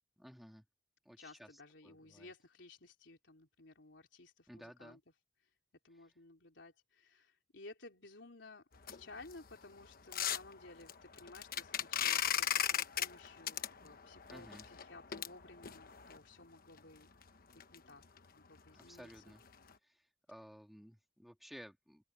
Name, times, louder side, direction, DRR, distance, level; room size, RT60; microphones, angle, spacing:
voice 1, 0.2-0.6 1.0-1.5 1.8-2.3 4.5-5.0 14.3-14.7 18.8-19.4 19.8-22.0, equal, ahead, 3.2 m, -55 dB
voice 2, 1.2-5.0 5.4-5.5 5.8-17.1 17.5-18.0 18.3-19.2, left 2 dB, 75° left, 3.9 m, -56 dB
sound 1, 8.7-16.2 16.8-16.9 17.2-17.3 17.6-17.7 18.0-18.2 18.6-18.8 19.1-19.2 19.7-19.8, left 9 dB, 50° left, 1.2 m, -38 dB
open air
head